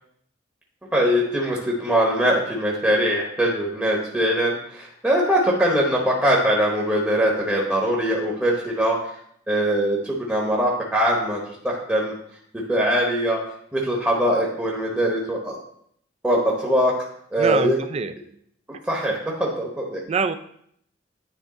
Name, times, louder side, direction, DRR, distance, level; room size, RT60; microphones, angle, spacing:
voice 1, 0.9-9.1 9.5-12.1 12.7-13.4 13.7-15.6 16.2-16.9 17.3-17.8 18.8-20.0, equal, 10° right, -3 dB, 0.9 m, -22 dB
voice 2, 17.4-18.1 20.1-20.4, right 5 dB, 30° right, 10 dB, 0.3 m, -24 dB
9.8 x 3.4 x 4.0 m, 0.68 s
head